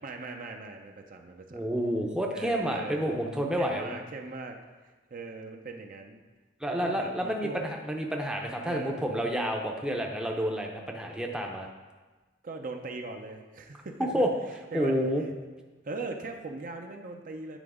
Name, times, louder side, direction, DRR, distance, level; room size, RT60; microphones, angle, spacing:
voice 1, 0.0-1.7 2.3-3.2 3.6-4.6 5.1-6.2 6.7-7.6 8.6-9.1 12.4-14.2 14.7-15.0 15.8-17.6, right 3 dB, 45° right, 4 dB, 0.6 m, -39 dB
voice 2, 1.5-3.9 6.6-11.7 14.0-14.3 14.7-15.2, equal, 5° right, 1 dB, 0.6 m, -29 dB
9.1 x 3.9 x 4.9 m, 1.2 s
head